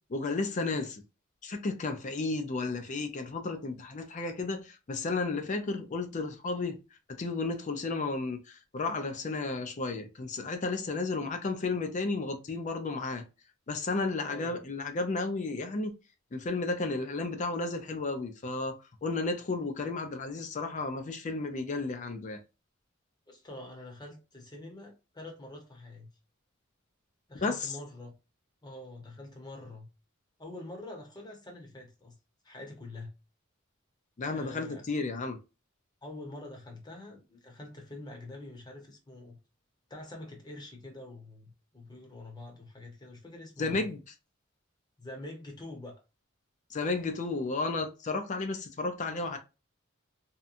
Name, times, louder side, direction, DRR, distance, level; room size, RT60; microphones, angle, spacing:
voice 1, 0.1-1.0 1.4-6.8 7.2-13.2 13.7-15.9 16.3-18.8 19.0-22.4 27.3-27.7 34.2-35.4 43.6-44.1 46.7-49.4, left 3 dB, 35° left, 0.4 m, -33 dB
voice 2, 14.2-14.6 23.3-26.1 27.3-28.1 28.6-29.9 30.4-32.2 32.4-33.1 34.3-34.8 36.0-39.4 39.9-43.9 45.0-46.0, left 1 dB, 20° left, 0.9 m, -45 dB
2.8 x 2.2 x 2.4 m
head